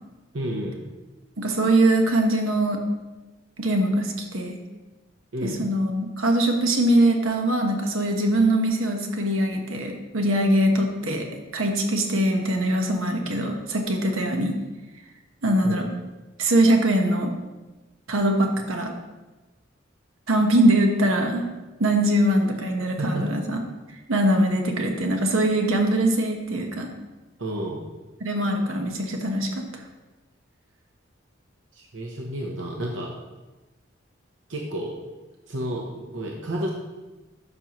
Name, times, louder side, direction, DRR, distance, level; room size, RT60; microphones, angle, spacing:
voice 1, 0.3-0.8 5.3-5.6 15.6-15.8 23.0-23.3 27.4-27.8 31.7-33.1 34.5-34.9 35.5-36.7, right 1 dB, 65° right, -1 dB, 0.9 m, -30 dB
voice 2, 1.4-2.8 3.6-4.6 5.4-11.3 11.5-14.6 15.4-15.9 16.4-17.3 18.1-18.9 20.3-21.4 21.8-23.6 24.1-26.9 28.2-29.6, right 1 dB, 85° right, 3 dB, 1.2 m, -22 dB
12.0 x 5.6 x 3.0 m, 1.1 s
head